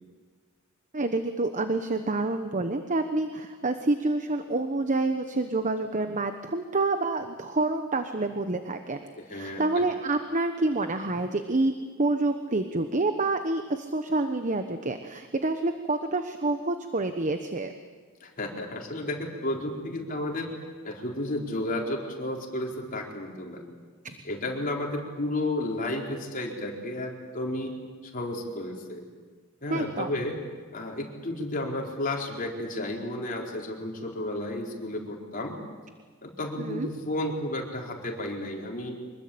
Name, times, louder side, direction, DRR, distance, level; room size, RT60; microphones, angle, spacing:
voice 1, 0.9-17.7 24.0-24.2 29.7-30.1 36.6-36.9, right 2 dB, 35° right, 8 dB, 1.1 m, -28 dB
voice 2, 9.2-9.8 18.2-20.5 20.8-23.6 24.2-27.8 28.0-29.0 29.6-30.4 30.7-35.6 36.2-39.0, left 1 dB, 40° left, 0 dB, 4.2 m, -32 dB
25.0 x 21.0 x 8.6 m, 1.5 s
head